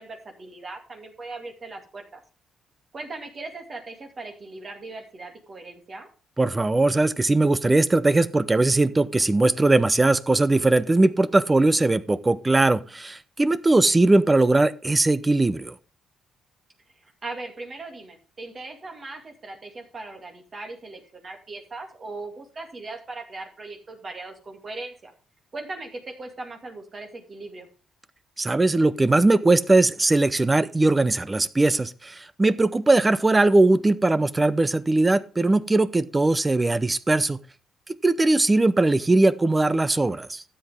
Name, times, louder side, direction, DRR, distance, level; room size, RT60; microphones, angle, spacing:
voice 1, 0.0-2.2 2.9-6.1 17.0-25.1 25.5-27.7, right 3 dB, 40° right, 4 dB, 2.3 m, -39 dB
voice 2, 6.4-15.7 28.4-37.4 38.0-40.4, right 2 dB, 20° right, 16 dB, 0.6 m, -20 dB
12.5 x 8.0 x 3.5 m, 0.36 s
cardioid pair, 90°, 0 cm